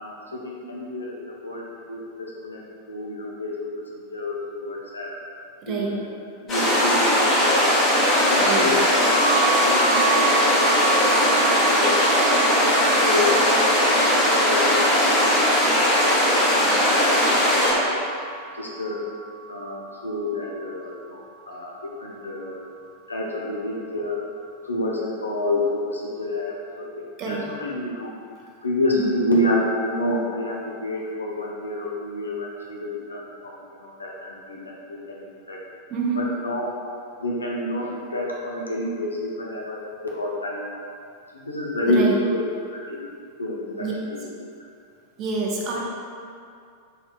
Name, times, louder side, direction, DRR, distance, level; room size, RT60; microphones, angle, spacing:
voice 1, 0.0-5.2 5.7-6.1 6.4-7.7 8.3-12.2 12.6-15.9 16.5-18.0 18.5-19.0 19.5-22.6 23.1-24.2 24.6-28.1 28.6-35.6 36.2-36.7 37.2-40.7 41.3-42.4 42.7-43.0 43.4-44.2, left 1 dB, 75° left, -3 dB, 0.4 m, -29 dB
voice 2, 5.6-6.0 8.4-8.8 27.2-27.5 28.9-29.1 35.9-36.3 41.9-42.2 43.8-43.9 45.2-45.8, right 4 dB, 35° right, -2 dB, 0.5 m, -27 dB
sound 1, 6.5-17.7, equal, 25° left, 1.0 m, -19 dB
sound 2, 9.0-20.8, right 6 dB, 15° right, 1.1 m, -31 dB
3.2 x 2.7 x 2.3 m, 2.4 s
figure-of-eight pair, 90°, 0 cm